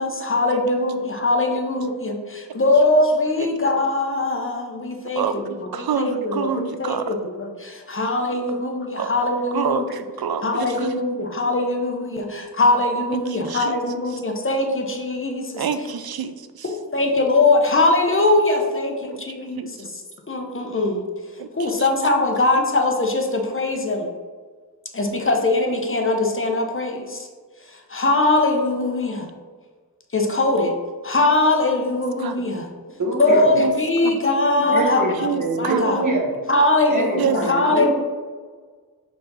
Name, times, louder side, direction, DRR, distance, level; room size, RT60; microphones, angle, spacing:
voice 1, 0.0-9.9 10.4-15.7 16.6-20.0 20.3-21.1 21.5-24.1 24.9-27.3 27.7-29.3 30.1-30.7 31.0-32.7 33.2-35.3 35.6-36.0 36.5-37.9, left 2 dB, 35° left, 2 dB, 0.7 m, -21 dB
voice 2, 5.2-7.1 9.0-9.1 9.5-10.9 13.3-13.8 15.6-16.7 19.6-19.7 21.4-21.9 32.2-32.5 33.6-33.7 34.0-34.2 35.2-35.8 37.2-37.4 37.6-37.8, right 7 dB, 80° right, 10 dB, 0.5 m, -27 dB
voice 3, 33.0-33.6 34.7-36.3 36.9-37.9, right 2 dB, 55° right, -3 dB, 1.6 m, -24 dB
4.7 x 3.9 x 5.3 m, 1.5 s
wide cardioid pair, 100°, 36 cm